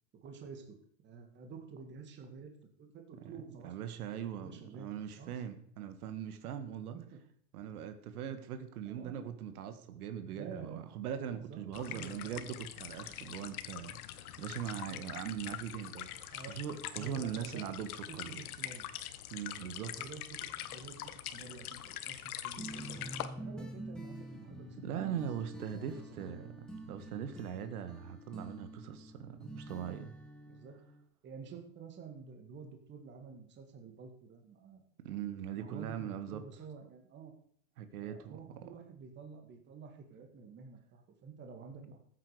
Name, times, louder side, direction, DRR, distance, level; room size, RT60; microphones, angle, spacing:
voice 1, 0.2-0.8 1.0-5.3 6.9-7.2 8.9-9.2 10.3-10.9 11.3-12.4 16.3-16.6 16.9-17.7 18.1-18.9 19.9-21.0 21.2-24.8 25.7-26.5 30.5-30.8 31.2-34.8 35.5-37.3 38.0-42.0, right 5 dB, 25° right, 4 dB, 2.0 m, -50 dB
voice 2, 3.6-7.0 7.5-18.4 19.3-20.0 24.8-26.5 26.9-30.1 35.0-36.4 37.8-38.4 41.7-41.9, right 9 dB, 80° right, 9 dB, 1.8 m, -41 dB
sound 1, 11.7-23.3, left 12 dB, 80° left, 1.3 m, -44 dB
sound 2, 22.6-31.0, right 1 dB, ahead, 1.9 m, -47 dB
14.5 x 8.6 x 5.0 m, 0.64 s
supercardioid pair, 150°, 43 cm